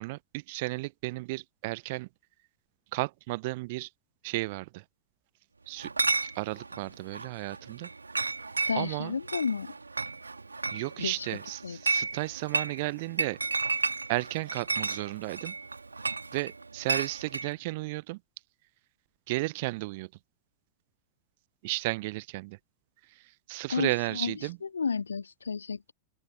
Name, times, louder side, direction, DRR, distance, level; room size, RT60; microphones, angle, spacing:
voice 1, 0.0-2.1 2.9-3.9 4.2-4.8 5.7-5.9 6.2-7.9 8.7-9.2 10.7-13.4 14.1-15.5 16.3-18.2 19.3-20.1 21.6-22.6 23.1-24.6, right 23 dB, 50° right, 0.9 m, -33 dB
Chatter / Chink clink, 5.8-17.5, right 3 dB, 80° right, 3.0 m, -33 dB
voice 2, 8.7-9.7 11.0-11.1 11.6-11.8 23.7-24.3 24.6-25.9, left 5 dB, 75° left, 2.9 m, -32 dB
open air
figure-of-eight pair, 90°, 0 cm